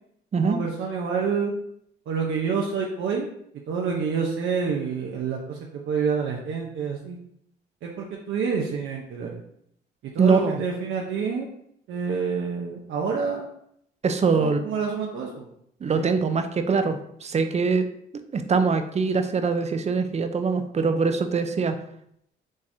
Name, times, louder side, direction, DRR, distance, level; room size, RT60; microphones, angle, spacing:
voice 1, 0.4-1.5 2.1-3.3 3.7-7.2 7.8-9.4 10.0-11.5 11.9-13.5 14.4-15.5 15.9-16.1, right 5 dB, 75° right, -1 dB, 0.7 m, -28 dB
voice 2, 10.2-10.6 14.0-14.6 15.8-17.9 18.3-21.8, right 5 dB, 35° right, 8 dB, 0.5 m, -23 dB
5.3 x 3.5 x 2.7 m, 0.70 s
cardioid pair, 90°, 20 cm